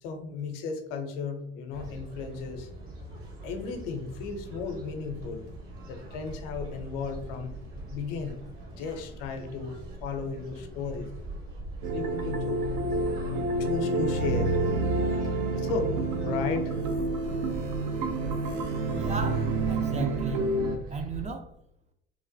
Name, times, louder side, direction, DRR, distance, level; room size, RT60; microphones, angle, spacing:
voice 1, 0.0-2.7 3.4-5.5 5.9-7.6 7.9-11.1 11.9-12.6 13.6-14.6 15.5-16.8, left 5 dB, 70° left, 0.6 m, -35 dB
sound 1, 1.7-21.3, right 2 dB, 45° right, 1.2 m, -41 dB
sound 2, 11.8-20.8, right 2 dB, 70° right, 0.5 m, -28 dB
voice 2, 18.9-20.5 20.9-21.5, right 4 dB, 25° right, 0.4 m, -35 dB
3.0 x 2.1 x 2.6 m
hypercardioid pair, 60°, 30 cm